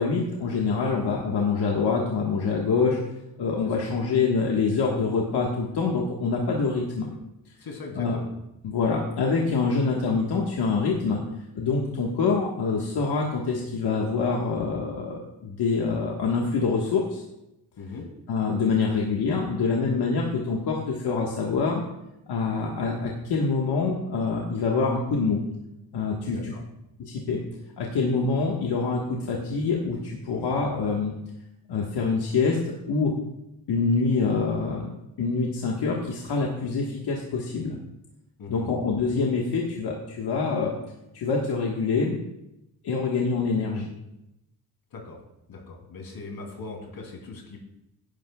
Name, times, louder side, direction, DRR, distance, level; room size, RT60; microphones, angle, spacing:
voice 1, 0.0-3.0 3.4-7.1 8.0-8.2 8.6-11.2 11.5-17.2 18.3-21.8 22.3-25.4 25.9-26.5 27.0-27.4 27.8-31.1 31.7-32.6 32.9-33.1 33.7-34.9 35.2-37.8 38.5-40.7 41.1-42.1 42.8-43.9, left 4 dB, 85° left, -2 dB, 1.5 m, -25 dB
voice 2, 7.6-8.3 17.8-18.1 26.3-26.6 30.3-30.5 38.4-38.7 44.9-45.2 45.5-47.6, left 3 dB, 70° left, 0 dB, 3.2 m, -40 dB
16.5 x 10.5 x 2.3 m, 0.87 s
wide cardioid pair, 160°, 38 cm